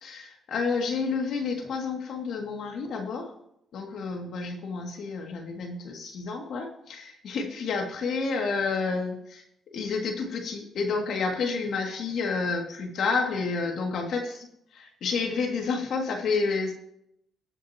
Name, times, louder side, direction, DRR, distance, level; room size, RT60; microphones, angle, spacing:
voice 1, 0.0-3.3 3.7-9.4 9.7-16.7, left 4 dB, 70° left, 2 dB, 2.7 m, -30 dB
20.0 x 7.3 x 3.1 m, 0.77 s
cardioid pair, 90°, 0 cm